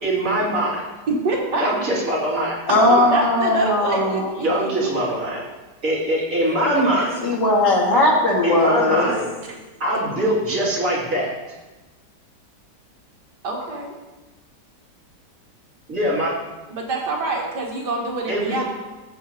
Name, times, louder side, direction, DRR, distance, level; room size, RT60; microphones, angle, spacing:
voice 1, 0.0-0.9 1.6-2.6 4.4-5.4 5.8-7.1 8.4-9.3 9.8-11.3 15.9-16.3 18.3-18.6, right 1 dB, 50° right, -7 dB, 3.1 m, -22 dB
voice 2, 1.1-1.7 2.9-4.7 6.5-6.8 13.4-14.0 16.7-18.6, right 2 dB, 75° right, -1 dB, 2.1 m, -26 dB
voice 3, 2.7-4.3 7.2-9.1, left 1 dB, 80° left, -2 dB, 2.6 m, -18 dB
14.5 x 7.9 x 3.0 m, 1.1 s
omnidirectional pair, 1.8 m